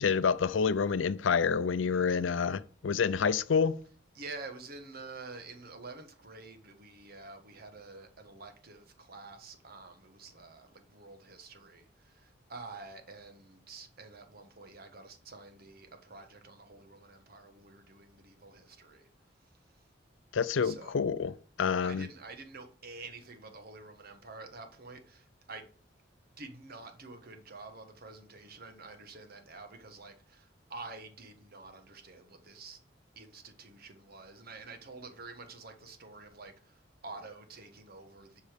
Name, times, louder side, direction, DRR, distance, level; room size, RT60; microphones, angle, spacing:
voice 1, 0.0-3.8 20.3-21.3 21.6-22.1, left 6 dB, 85° left, 0.5 m, -28 dB
voice 2, 1.9-2.3 4.1-19.1 20.6-21.0 21.8-25.7 26.4-32.8 33.1-38.4, right 3 dB, 55° right, 1.4 m, -48 dB
8.0 x 5.5 x 6.7 m
head